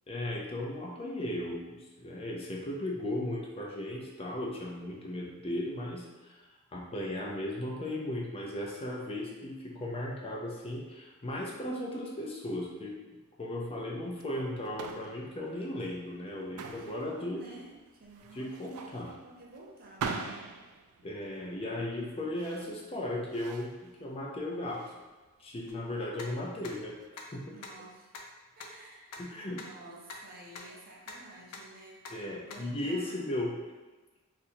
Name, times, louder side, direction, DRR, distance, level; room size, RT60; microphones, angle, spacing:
voice 1, 0.1-6.4 6.7-12.9 13.4-17.4 18.3-19.1 21.0-24.9 25.4-26.9 27.3-27.5 29.2-29.6 32.1-33.6, left 1 dB, 25° left, -2 dB, 0.5 m, -36 dB
sound 1, 14.1-27.1, right 5 dB, 80° right, 0.3 m, -44 dB
voice 2, 16.5-20.6 27.5-28.1 28.5-33.3, right 1 dB, 40° right, -2 dB, 0.6 m, -52 dB
sound 2, 25.7-25.8 26.2-26.3 26.6-26.7 27.2-27.3 27.6-27.7 28.1-28.2 28.6-28.7 29.1-29.2 29.6-29.7 30.1-30.2 30.6-30.7 31.1-31.2 31.5-31.6 32.0-32.1 32.5-32.6, left 4 dB, 90° left, 0.5 m, -43 dB
2.7 x 2.5 x 4.2 m, 1.2 s
head